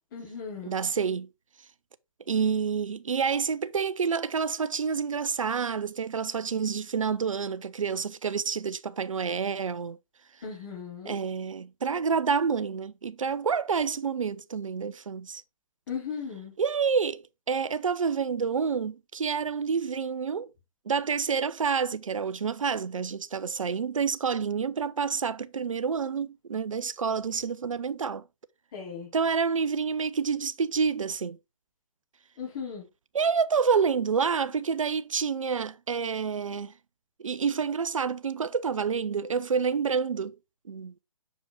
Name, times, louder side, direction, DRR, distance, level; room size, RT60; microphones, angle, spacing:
voice 1, 0.1-0.8 10.4-11.2 15.9-16.6 28.7-29.1 32.4-32.9, left 6 dB, 40° left, 4.2 m, -37 dB
voice 2, 0.7-1.3 2.3-10.0 11.1-15.4 16.6-20.5 20.9-28.2 29.1-31.4 33.1-36.7 37.2-40.4 40.7-40.9, right 6 dB, 70° right, 0.5 m, -28 dB
6.7 x 5.1 x 3.5 m
figure-of-eight pair, 135°, 17 cm